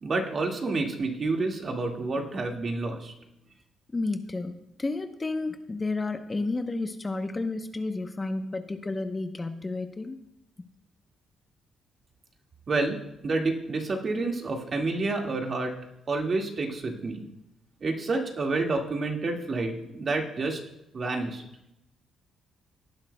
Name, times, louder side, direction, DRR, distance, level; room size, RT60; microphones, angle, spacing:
voice 1, 0.0-3.1 12.7-13.0 13.2-15.7 16.1-17.3 17.8-20.6 20.9-21.4, right 3 dB, 45° right, 2 dB, 1.9 m, -29 dB
voice 2, 3.9-10.2, left 3 dB, 25° left, 7 dB, 0.8 m, -31 dB
17.5 x 10.5 x 2.2 m, 0.85 s
cardioid pair, 90°, 0 cm